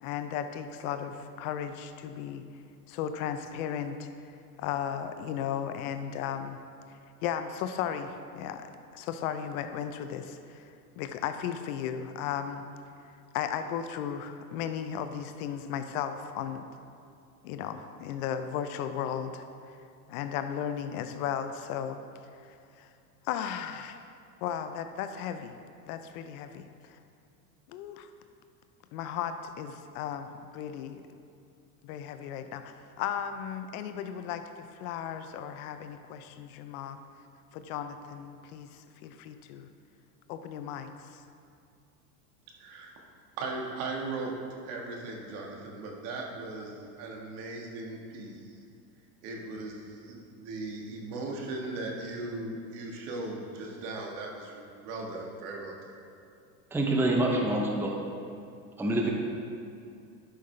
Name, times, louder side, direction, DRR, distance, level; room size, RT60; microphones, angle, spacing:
voice 1, 0.0-2.4 2.9-4.1 4.6-6.6 6.9-8.7 8.9-12.6 13.3-16.6 17.4-19.7 20.1-22.0 22.4-22.9 23.2-24.1 24.4-25.5 25.9-27.0 27.7-28.1 28.9-31.0 31.8-37.0 37.5-39.7 40.3-41.2, left 9 dB, 65° left, 9 dB, 0.7 m, -35 dB
voice 2, 42.6-42.9 43.4-44.4 44.6-48.6 49.2-55.9, right 2 dB, 60° right, 0 dB, 1.7 m, -38 dB
voice 3, 56.7-57.9 58.8-59.1, right 1 dB, 5° right, 0 dB, 0.7 m, -26 dB
11.0 x 5.7 x 3.3 m, 2.5 s
supercardioid pair, 115°, 47 cm